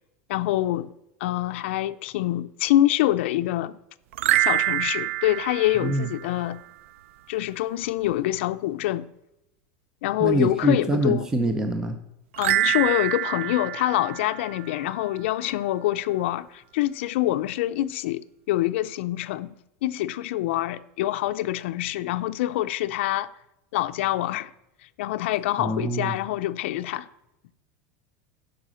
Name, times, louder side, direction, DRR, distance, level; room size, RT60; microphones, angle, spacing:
voice 1, 0.3-0.9 1.2-3.8 4.4-6.6 7.3-9.1 10.0-11.3 12.4-19.5 19.8-23.3 23.7-24.5 25.0-27.1, left 14 dB, 70° left, 0.5 m, -25 dB
sound 1, 4.1-6.6 12.3-15.0, right 14 dB, 85° right, 0.4 m, -26 dB
voice 2, 10.2-12.0 25.6-26.2, right 2 dB, 10° right, 0.5 m, -25 dB
12.0 x 5.0 x 6.2 m
supercardioid pair, 180°, 7 cm